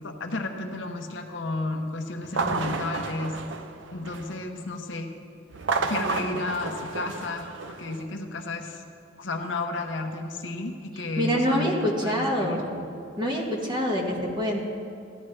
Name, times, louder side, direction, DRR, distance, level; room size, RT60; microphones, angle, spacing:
voice 1, 0.0-3.3 3.9-5.1 5.9-7.5 7.8-8.8 9.2-12.6 13.7-13.8, left 2 dB, 65° left, 4 dB, 0.9 m, -32 dB
sound 1, 2.2-4.5 5.5-8.0, right 4 dB, 65° right, 0.7 m, -31 dB
voice 2, 11.2-12.8 13.2-14.6, equal, 25° right, -1 dB, 1.4 m, -26 dB
15.5 x 11.0 x 3.3 m, 2.4 s
head